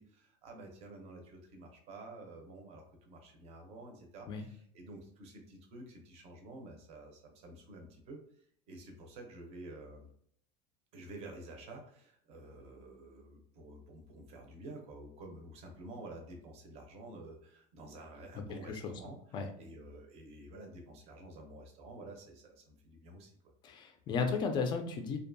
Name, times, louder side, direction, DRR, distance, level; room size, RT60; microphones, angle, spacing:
voice 1, 0.0-8.2 8.7-10.1 10.9-23.3, right 2 dB, 35° right, 2 dB, 0.6 m, -50 dB
voice 2, 18.4-18.9 19.3-19.5 23.6-25.2, left 5 dB, 25° left, 5 dB, 0.3 m, -34 dB
2.6 x 2.2 x 2.5 m, 0.65 s
cardioid pair, 165°, 18 cm